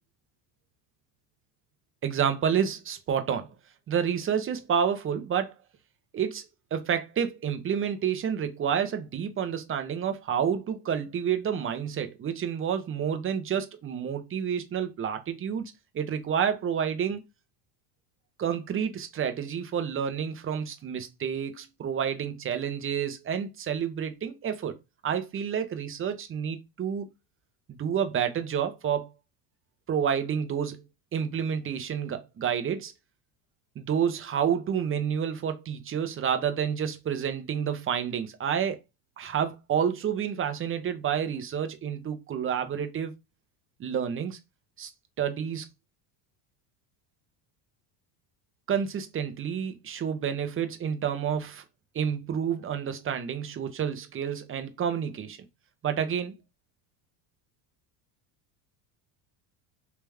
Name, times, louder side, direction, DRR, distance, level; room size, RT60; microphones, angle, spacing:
voice 1, 2.0-3.5 3.9-5.5 6.1-6.4 6.7-17.2 18.4-24.8 25.0-27.1 27.7-29.1 29.9-30.8 31.1-32.9 33.8-38.8 39.2-43.1 43.8-44.4 44.8-44.9 45.2-45.6 48.7-51.6 51.9-55.4 55.8-56.4, right 8 dB, 25° right, 0.7 m, -29 dB
3.4 x 3.0 x 3.4 m
supercardioid pair, 120°, 50 cm